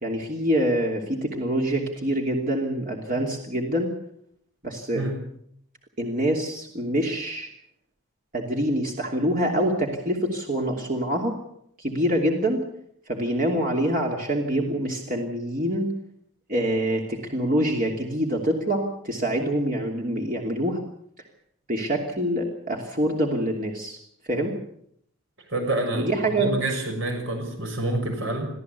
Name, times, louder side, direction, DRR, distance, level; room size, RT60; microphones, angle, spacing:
voice 1, 0.0-3.9 4.6-5.0 6.0-7.5 8.3-11.4 11.8-12.6 13.1-15.9 16.5-20.8 21.7-24.0 24.3-24.5 25.9-26.5, right 1 dB, 40° right, 1 dB, 2.9 m, -25 dB
voice 2, 25.5-28.5, right 2 dB, 60° right, 3 dB, 6.5 m, -28 dB
24.5 x 15.0 x 8.3 m, 0.70 s
head